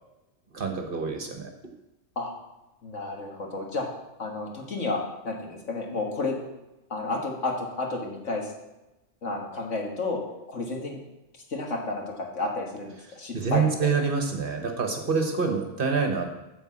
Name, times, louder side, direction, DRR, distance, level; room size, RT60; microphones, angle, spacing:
voice 1, 0.5-1.5 13.3-16.3, right 5 dB, 45° right, 4 dB, 1.3 m, -26 dB
voice 2, 2.8-3.9 4.2-6.4 6.9-8.5 9.2-10.2 10.5-11.0 11.5-13.9, left 3 dB, 75° left, 0 dB, 2.0 m, -31 dB
9.8 x 4.5 x 7.4 m, 0.98 s
omnidirectional pair, 1.3 m